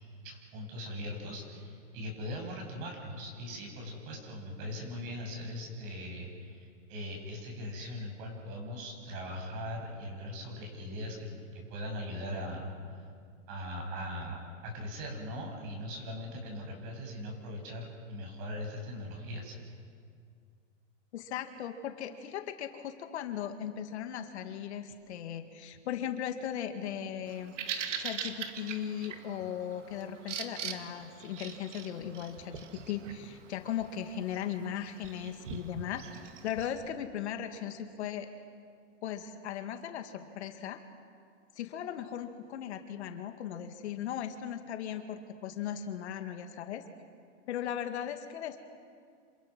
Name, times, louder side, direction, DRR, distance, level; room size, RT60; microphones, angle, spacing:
voice 1, 0.2-12.7 13.5-19.5, left 1 dB, 40° right, 1 dB, 7.9 m, -40 dB
voice 2, 21.1-36.0 36.4-38.3 39.0-40.8 41.6-46.8 47.5-48.6, left 9 dB, 60° left, 6 dB, 2.2 m, -38 dB
Bird vocalization bird call bird song, 27.3-36.7, right 7 dB, 75° right, 2.4 m, -42 dB
29.0 x 27.5 x 6.2 m, 2.2 s
hypercardioid pair, 150°, 37 cm